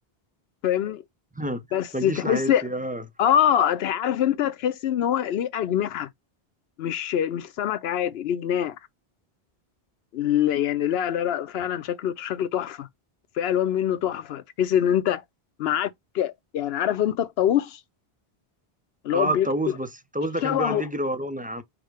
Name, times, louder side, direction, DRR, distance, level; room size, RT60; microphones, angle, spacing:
voice 1, 0.6-1.0 1.7-2.6 3.2-6.1 6.8-8.7 10.1-12.9 13.4-15.2 15.6-15.9 16.1-17.8 19.0-19.5 20.4-20.8, left 10 dB, 80° left, 0.8 m, -24 dB
voice 2, 1.9-3.0 19.1-21.6, right 1 dB, 10° right, 0.5 m, -28 dB
4.9 x 2.1 x 4.8 m
omnidirectional pair, 1.0 m